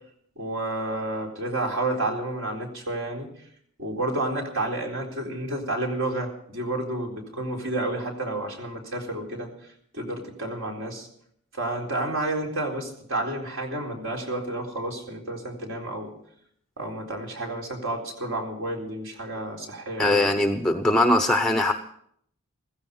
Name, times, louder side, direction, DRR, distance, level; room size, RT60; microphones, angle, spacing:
voice 1, 0.4-3.3 3.8-9.5 9.9-11.1 11.5-16.1 16.8-20.4, right 2 dB, 60° right, 1 dB, 3.9 m, -30 dB
voice 2, 20.0-21.7, left 1 dB, 5° left, 6 dB, 0.7 m, -21 dB
15.5 x 15.5 x 5.5 m, 0.68 s
head